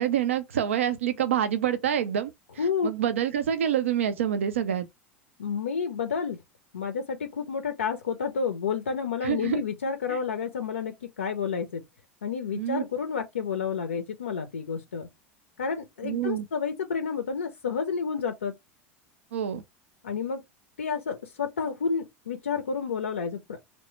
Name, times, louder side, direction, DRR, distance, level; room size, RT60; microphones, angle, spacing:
voice 1, 0.0-4.9 9.2-9.6 10.1-10.2 12.5-12.8 16.0-16.5 19.3-19.6, right 9 dB, 80° right, 0.4 m, -27 dB
voice 2, 2.6-2.9 5.4-6.4 6.7-11.8 12.2-15.1 15.6-18.5 20.0-20.4 20.8-23.6, left 6 dB, 85° left, 0.4 m, -30 dB
3.1 x 2.0 x 3.0 m
hypercardioid pair, 80°, 7 cm